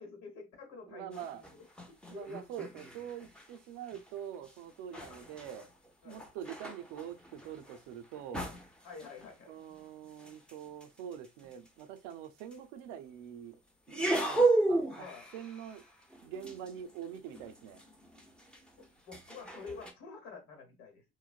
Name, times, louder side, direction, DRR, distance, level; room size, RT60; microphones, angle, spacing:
voice 1, 0.0-2.4 4.9-5.2 6.0-6.3 8.8-9.6 15.0-15.3 18.8-21.0, left 4 dB, 75° left, 1.1 m, -49 dB
voice 2, 0.9-1.4 2.1-5.7 6.0-8.5 9.5-13.6 13.9-15.1 15.3-15.8 16.2-17.8, right 9 dB, 90° right, 0.5 m, -44 dB
sound 1, 1.1-3.6 3.8-4.1 4.4-11.7 12.4-12.5 13.9-19.9, right 2 dB, 5° left, 0.6 m, -35 dB
3.1 x 2.1 x 2.4 m
supercardioid pair, 70°, 31 cm